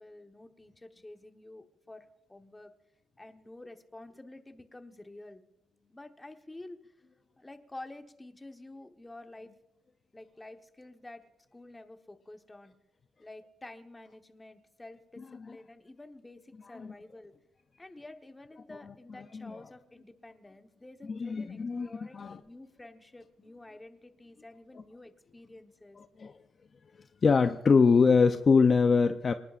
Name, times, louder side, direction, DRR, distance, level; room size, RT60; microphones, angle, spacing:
voice 1, 0.0-2.7 3.2-5.4 5.9-6.9 7.4-9.5 10.1-11.2 11.5-12.7 13.2-17.3 17.8-26.0, left 2 dB, 10° left, 6 dB, 1.1 m, -49 dB
voice 2, 21.1-22.4 26.2-26.3 27.2-29.3, left 5 dB, 35° left, 8 dB, 0.5 m, -23 dB
28.0 x 19.0 x 2.5 m, 1.0 s
cardioid pair, 140°, 0 cm